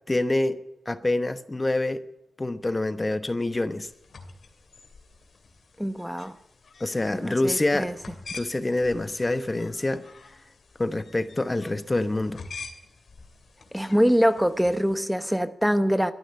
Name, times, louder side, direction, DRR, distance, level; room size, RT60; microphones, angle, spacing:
voice 1, 0.1-0.6 0.9-2.0 2.4-3.9 6.8-7.9 8.3-10.0 10.8-12.4, left 2 dB, 30° left, 1.0 m, -26 dB
sound 1, 3.9-15.2, left 4 dB, 70° left, 2.5 m, -47 dB
voice 2, 5.8-6.3 7.1-7.9 13.7-16.1, equal, 5° right, 0.9 m, -24 dB
13.0 x 11.5 x 9.8 m
cardioid pair, 60°, 0 cm